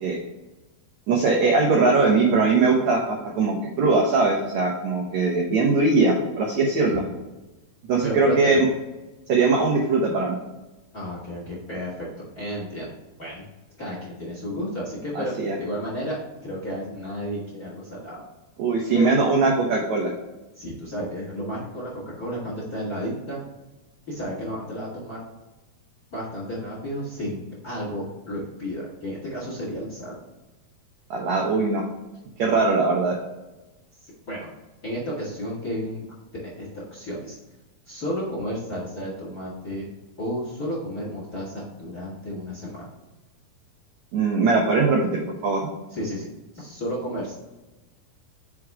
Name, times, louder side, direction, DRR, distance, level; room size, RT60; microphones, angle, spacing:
voice 1, 1.1-7.0 7.9-8.7 9.3-10.4 15.1-15.6 18.6-20.1 31.1-31.8 32.4-33.1 44.1-45.6, right 3 dB, 75° right, -1 dB, 1.6 m, -21 dB
voice 2, 8.0-8.6 10.9-12.9 13.2-13.4 13.8-18.2 18.9-19.1 20.6-23.4 24.1-25.2 26.1-30.1 34.0-34.5 34.8-37.3 37.9-39.9 40.2-42.9 45.9-46.3 46.5-47.3, equal, 30° left, -6 dB, 1.9 m, -32 dB
6.1 x 4.7 x 3.6 m, 1.1 s
omnidirectional pair, 4.4 m